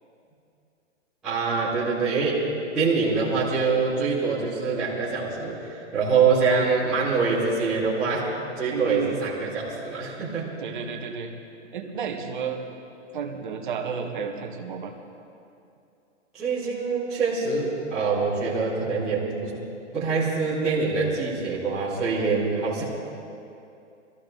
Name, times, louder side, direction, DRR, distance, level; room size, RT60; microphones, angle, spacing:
voice 1, 1.2-2.4 2.7-8.2 8.6-10.5 16.3-19.5 19.9-22.8, right 4 dB, ahead, -15 dB, 0.5 m, -25 dB
voice 2, 8.7-9.2 10.6-11.3 11.7-12.6 13.1-14.9, right 6 dB, 40° right, 3 dB, 1.4 m, -31 dB
21.0 x 14.0 x 3.9 m, 2.6 s
hypercardioid pair, 175°, 36 cm